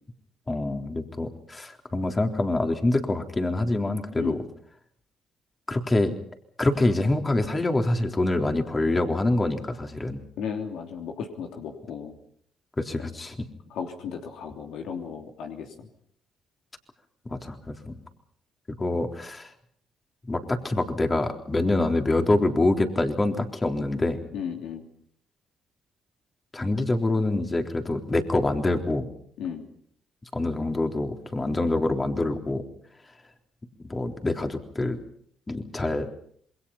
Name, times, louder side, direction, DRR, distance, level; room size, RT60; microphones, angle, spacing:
voice 1, 0.5-4.4 5.7-6.1 6.6-10.2 12.8-13.4 17.3-17.9 18.7-19.5 20.3-24.2 26.5-29.0 30.3-32.6 33.8-35.0 35.5-36.1, left 2 dB, 25° left, 4 dB, 3.7 m, -25 dB
voice 2, 10.4-12.1 13.7-15.9 24.3-24.9 29.4-29.7, left 7 dB, 80° left, 3 dB, 3.0 m, -35 dB
27.0 x 22.0 x 5.7 m, 0.64 s
supercardioid pair, 70°, 0 cm